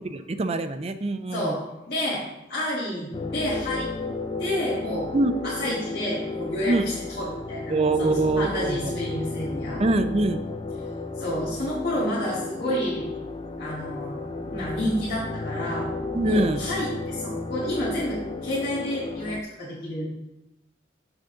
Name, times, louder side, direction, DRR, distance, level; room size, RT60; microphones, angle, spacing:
voice 1, 0.0-1.5 5.1-5.3 6.7-6.8 7.7-8.9 9.8-10.4 16.1-16.6, right 2 dB, 35° right, 9 dB, 0.5 m, -24 dB
voice 2, 1.3-3.9 4.4-5.1 5.4-9.8 11.2-13.1 13.6-15.9 16.2-20.1, equal, 55° left, -9 dB, 1.8 m, -30 dB
sound 1, 3.1-19.4, left 3 dB, 25° left, 0.4 m, -33 dB
7.9 x 6.1 x 3.7 m, 0.90 s
head